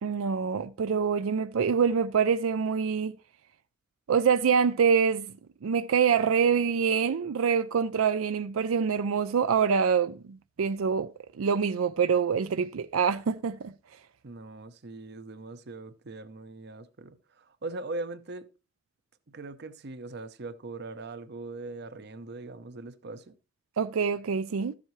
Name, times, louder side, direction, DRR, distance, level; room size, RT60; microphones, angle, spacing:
voice 1, 0.0-3.2 4.1-5.3 5.6-11.1 11.4-13.7 23.8-24.7, right 6 dB, 85° right, 0.4 m, -25 dB
voice 2, 14.2-18.5 19.3-23.4, right 2 dB, 55° right, 0.7 m, -40 dB
13.5 x 7.6 x 3.1 m
head